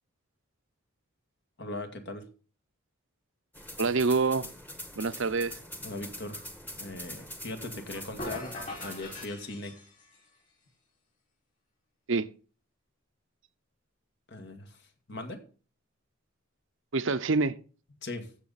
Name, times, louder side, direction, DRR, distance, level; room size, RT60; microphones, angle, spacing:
voice 1, 1.6-2.3 5.8-6.5 6.8-8.5 8.8-9.8 14.3-15.4 18.0-18.3, left 2 dB, 55° left, 2.0 m, -39 dB
sound 1, 3.5-9.3, left 1 dB, 10° left, 1.3 m, -44 dB
voice 2, 3.8-4.5 5.0-5.6 12.1-12.3 16.9-17.5, right 4 dB, 65° right, 0.8 m, -26 dB
sound 2, 8.2-10.3, left 1 dB, 40° left, 5.1 m, -41 dB
15.0 x 6.9 x 4.1 m
head